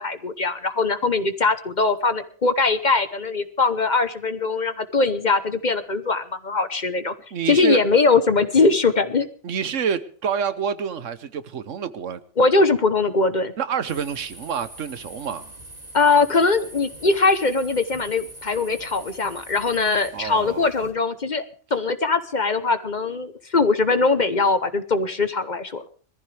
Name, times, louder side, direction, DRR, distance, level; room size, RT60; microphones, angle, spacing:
voice 1, 0.0-7.1 7.5-9.3 12.4-13.5 15.9-25.9, left 3 dB, 40° left, 12 dB, 1.0 m, -21 dB
voice 2, 7.3-7.8 9.4-12.2 13.6-15.5 20.1-20.7, right 7 dB, 75° right, 14 dB, 1.3 m, -27 dB
sound 1, 13.9-20.9, right 1 dB, 30° right, 3.0 m, -43 dB
22.0 x 14.5 x 3.4 m, 0.43 s
omnidirectional pair, 1.3 m